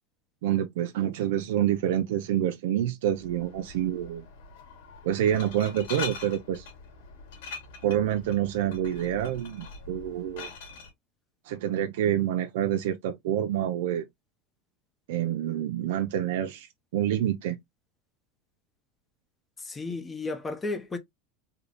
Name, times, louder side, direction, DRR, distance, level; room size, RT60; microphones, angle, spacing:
voice 1, 0.4-4.3 5.0-6.7 7.8-10.5 11.5-14.1 15.1-17.6, right 11 dB, 75° right, 0.5 m, -27 dB
Glass, 3.1-10.9, left 5 dB, 75° left, 1.9 m, -43 dB
voice 2, 19.6-21.0, left 3 dB, 15° left, 0.7 m, -33 dB
3.8 x 2.2 x 3.3 m
supercardioid pair, 150°, 0 cm